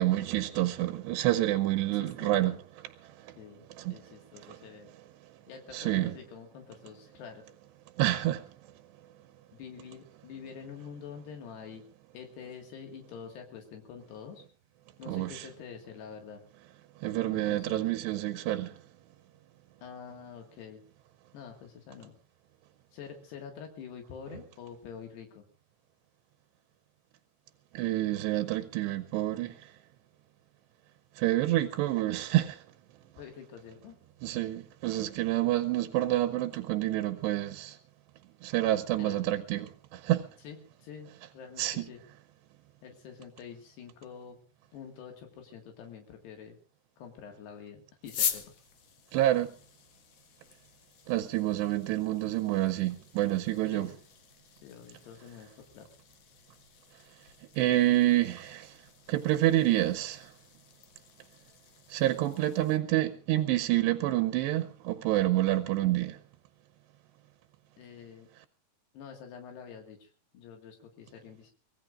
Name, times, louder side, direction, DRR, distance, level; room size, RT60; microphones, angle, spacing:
voice 1, 0.0-2.6 3.0-3.3 3.8-4.0 4.5-4.6 5.7-6.1 8.0-8.5 15.1-15.5 17.0-18.8 27.7-29.7 31.2-32.6 34.2-37.8 38.4-40.3 41.6-41.9 49.1-49.5 51.1-53.9 57.6-58.8 59.1-60.3 61.9-66.2, right 15 dB, 85° right, 3.0 m, -28 dB
voice 2, 1.9-2.6 3.4-3.7 3.9-4.9 5.5-7.4 9.5-11.8 12.1-14.4 15.0-16.4 17.3-17.9 19.8-20.8 21.3-22.2 22.9-25.4 33.2-34.0 39.0-39.2 40.4-42.0 42.8-44.4 44.7-46.6 47.0-48.4 53.7-53.9 54.5-55.5 55.7-55.9 67.8-68.3 68.9-71.5, left 7 dB, 75° left, 4.0 m, -46 dB
sound 1, 48.0-62.8, left 8 dB, 60° left, 2.2 m, -43 dB
24.5 x 19.5 x 2.5 m
omnidirectional pair, 4.9 m